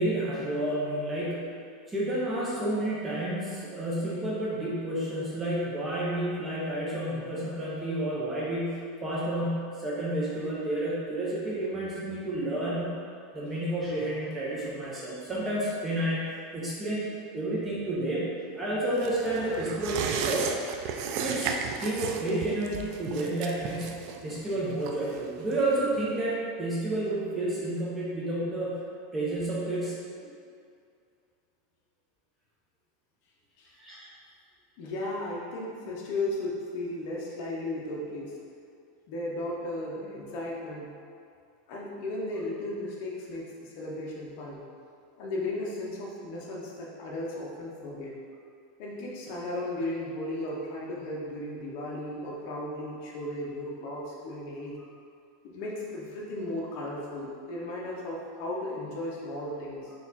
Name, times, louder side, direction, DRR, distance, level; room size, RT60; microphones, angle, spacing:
voice 1, 0.0-1.6 1.9-13.0 13.3-20.5 21.2-28.8 29.1-30.0 33.8-34.1, right 1 dB, 15° right, -7 dB, 0.7 m, -30 dB
sound 1, 19.0-26.0 26.4-26.5, right 6 dB, 50° right, 0.3 m, -35 dB
voice 2, 34.8-38.4 39.1-40.9 41.7-44.6 45.2-48.1 48.8-54.7 55.5-59.9, left 1 dB, 55° left, -4 dB, 0.7 m, -35 dB
4.1 x 2.4 x 4.1 m, 2.3 s
supercardioid pair, 155°, 0 cm